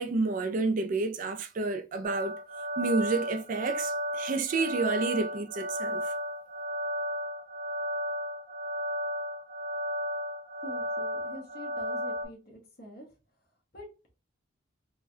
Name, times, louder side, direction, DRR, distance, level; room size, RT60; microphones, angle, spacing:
voice 1, 0.0-2.4 2.8-6.1, right 3 dB, 40° right, 0.3 m, -30 dB
sound 1, 2.0-12.2, equal, 25° right, 0.7 m, -34 dB
voice 2, 10.6-13.1 13.7-13.9, equal, 50° left, 1.1 m, -46 dB
3.3 x 2.2 x 2.6 m
head